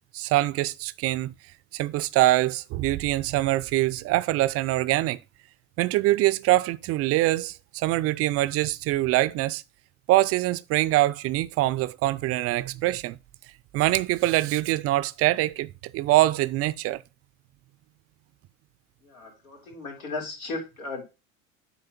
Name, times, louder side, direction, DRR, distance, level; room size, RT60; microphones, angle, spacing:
voice 1, 0.1-1.3 1.7-5.2 5.8-9.6 10.1-13.2 13.7-17.0, right 16 dB, 35° right, 0.4 m, -24 dB
voice 2, 19.0-21.0, left 3 dB, 80° left, 2.8 m, -36 dB
8.3 x 3.1 x 5.8 m
hypercardioid pair, 75°, 41 cm